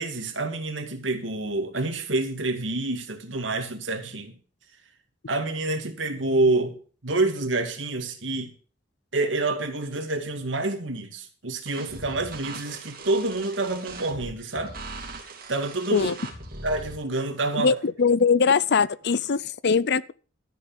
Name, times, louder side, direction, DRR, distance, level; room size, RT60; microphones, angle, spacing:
voice 1, 0.0-4.4 5.3-6.8 7.0-8.5 9.1-14.7 15.5-16.1 16.6-17.7, right 2 dB, 75° right, 2.4 m, -27 dB
sound 1, 11.7-17.0, right 2 dB, 50° right, 2.8 m, -40 dB
voice 2, 17.5-20.1, left 5 dB, 60° left, 0.6 m, -22 dB
13.5 x 6.5 x 7.5 m
head